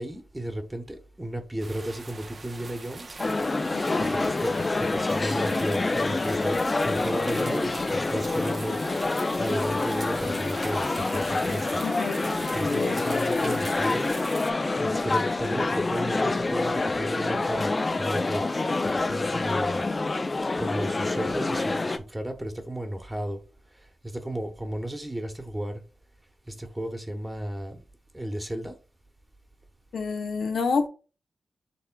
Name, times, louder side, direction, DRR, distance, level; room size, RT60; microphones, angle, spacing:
voice 1, 0.0-3.2 4.0-6.6 6.8-8.8 9.4-11.7 12.5-14.2 14.8-17.7 18.0-18.4 19.1-19.8 20.6-23.4 24.0-25.8 26.5-27.8 28.1-28.8, right 1 dB, 15° right, 1.0 m, -34 dB
sound 1, 1.6-14.5, right 3 dB, 50° right, 0.7 m, -42 dB
sound 2, 3.2-22.0, left 3 dB, 40° left, 0.5 m, -27 dB
voice 2, 3.7-4.0 11.8-12.2 12.6-13.1 29.9-30.9, left 4 dB, 75° left, 0.7 m, -29 dB
7.0 x 3.2 x 2.3 m
supercardioid pair, 45°, 0 cm